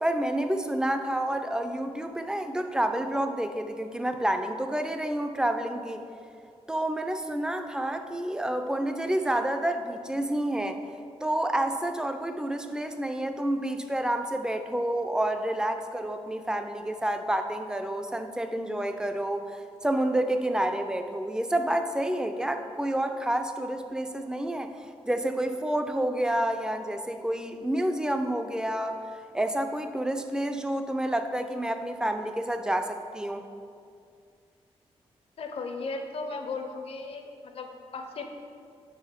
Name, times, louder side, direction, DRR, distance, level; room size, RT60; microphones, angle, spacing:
voice 1, 0.0-6.0 6.7-10.8 11.2-24.7 25.1-29.0 29.3-33.5, right 1 dB, 5° right, 7 dB, 0.3 m, -29 dB
voice 2, 35.4-38.2, left 3 dB, 65° left, 5 dB, 0.6 m, -36 dB
5.3 x 4.8 x 4.4 m, 2.4 s
wide cardioid pair, 115°, 11 cm